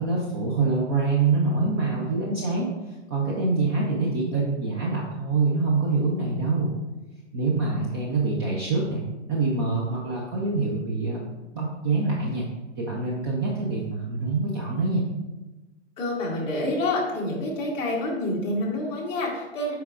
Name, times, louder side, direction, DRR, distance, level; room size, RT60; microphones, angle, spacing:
voice 1, 0.0-2.7 3.1-6.7 7.3-9.0 9.3-11.2 11.5-12.5 12.8-15.0, right 3 dB, 20° right, -3 dB, 0.5 m, -25 dB
voice 2, 16.0-19.7, left 1 dB, 15° left, -3 dB, 1.2 m, -27 dB
8.3 x 4.6 x 2.5 m, 1.1 s
hypercardioid pair, 150°, 37 cm